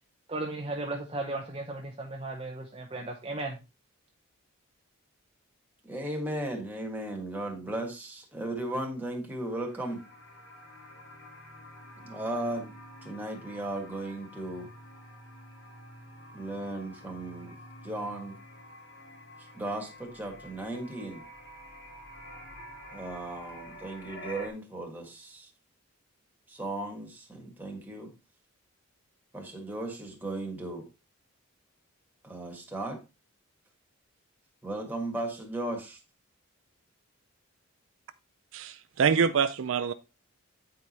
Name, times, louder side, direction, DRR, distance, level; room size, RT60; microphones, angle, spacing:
voice 1, 0.3-3.6, right 2 dB, 25° right, 0.8 m, -35 dB
voice 2, 5.8-10.0 12.0-12.8 13.0-14.7 16.3-17.6 17.8-18.3 19.5-21.2 22.9-25.5 26.5-28.1 29.3-30.9 32.2-33.0 34.6-36.0, right 1 dB, 10° right, 1.5 m, -36 dB
sound 1, 9.4-24.5, equal, 55° left, 2.1 m, -48 dB
voice 3, 38.5-39.9, right 6 dB, 60° right, 0.4 m, -25 dB
8.9 x 4.8 x 4.1 m
head